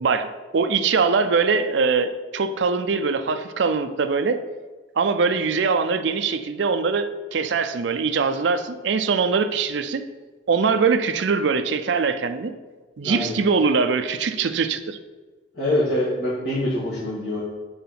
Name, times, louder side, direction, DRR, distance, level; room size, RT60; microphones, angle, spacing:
voice 1, 0.0-4.4 5.0-10.0 10.5-12.5 13.0-15.0, right 5 dB, 70° right, 9 dB, 0.4 m, -22 dB
voice 2, 13.0-13.3 15.5-17.4, left 1 dB, 60° left, -9 dB, 2.0 m, -24 dB
5.5 x 4.7 x 5.8 m, 1.3 s
head